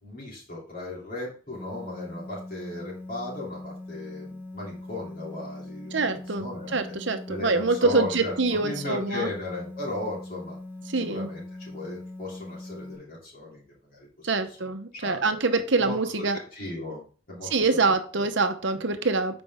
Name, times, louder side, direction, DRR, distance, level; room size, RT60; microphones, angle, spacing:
voice 1, 0.0-6.8 7.3-10.6 10.9-13.6 13.9-14.3 14.9-15.3 15.8-16.3 16.5-17.5 17.8-17.9 18.2-18.3, left 2 dB, 45° left, -5 dB, 3.0 m, -36 dB
sound 1, 1.5-12.9, left 2 dB, 15° right, 2.1 m, -41 dB
voice 2, 5.9-9.3 10.9-11.3 14.2-16.4 17.5-19.4, right 3 dB, 60° right, 8 dB, 0.9 m, -25 dB
8.5 x 5.3 x 3.6 m, 0.41 s
head